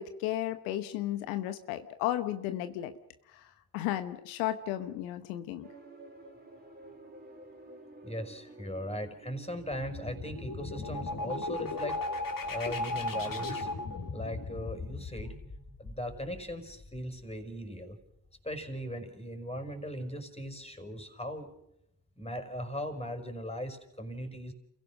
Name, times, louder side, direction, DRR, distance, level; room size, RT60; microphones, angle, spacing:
voice 1, 0.0-2.9 3.3-5.7, left 13 dB, 85° left, 10 dB, 1.1 m, -34 dB
sound 1, 5.6-13.5 13.7-14.0, right 2 dB, 20° right, 4.6 m, -52 dB
voice 2, 8.0-12.0 12.5-13.7 14.1-15.3 15.8-18.0 18.4-21.5 22.2-24.5, equal, 10° left, 6 dB, 5.4 m, -38 dB
sound 2, 9.6-17.2, left 2 dB, 40° left, 3.2 m, -37 dB
28.5 x 16.5 x 6.3 m, 0.81 s
hypercardioid pair, 45°, 50 cm